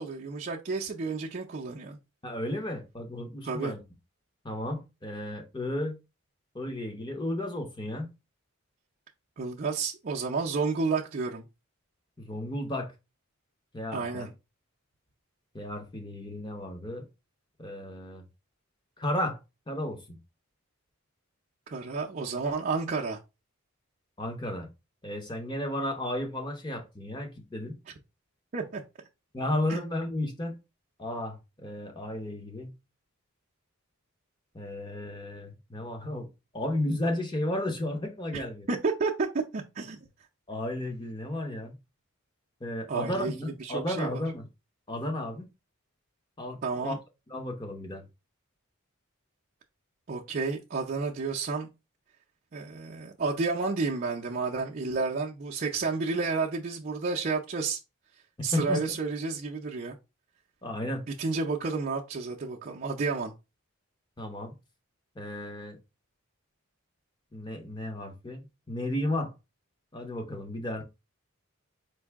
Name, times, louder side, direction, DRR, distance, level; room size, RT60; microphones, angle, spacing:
voice 1, 0.0-2.0 3.4-3.7 9.4-11.4 13.9-14.3 21.7-23.2 28.5-28.8 29.7-29.8 38.3-38.4 38.7-40.0 42.9-44.2 46.6-47.0 50.1-51.7 52.5-57.8 58.4-60.0 61.2-63.3, right 4 dB, 40° right, 0.5 m, -31 dB
voice 2, 2.2-3.8 4.4-6.0 6.5-8.1 12.2-12.9 13.7-14.3 15.5-17.1 17.6-18.2 19.0-19.4 19.7-20.2 24.2-24.7 25.0-27.8 29.3-30.6 31.0-32.7 34.5-36.3 36.5-38.7 40.5-41.8 42.6-44.5 44.9-45.4 46.4-47.0 47.3-48.0 58.5-58.8 60.6-61.0 64.2-64.6 65.2-65.8 67.3-69.3 69.9-70.8, left 1 dB, 20° left, 0.8 m, -33 dB
4.6 x 2.6 x 3.4 m
head